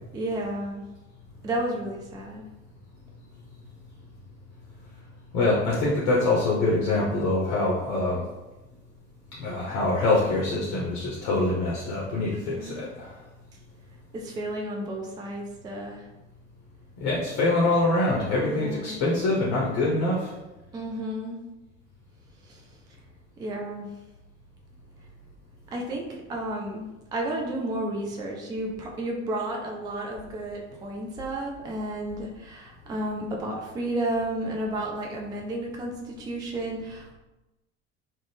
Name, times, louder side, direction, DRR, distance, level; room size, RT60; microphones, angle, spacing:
voice 1, 0.1-0.8 1.4-2.4 12.5-12.9 14.1-16.0 18.4-19.0 20.7-21.4 22.5-22.6 23.4-23.9 25.7-37.1, right 1 dB, 10° right, 0 dB, 0.3 m, -32 dB
voice 2, 5.3-8.2 9.4-13.2 17.0-20.3, left 2 dB, 45° left, -4 dB, 0.7 m, -24 dB
2.5 x 2.1 x 3.2 m, 1.0 s
figure-of-eight pair, 65°, 37 cm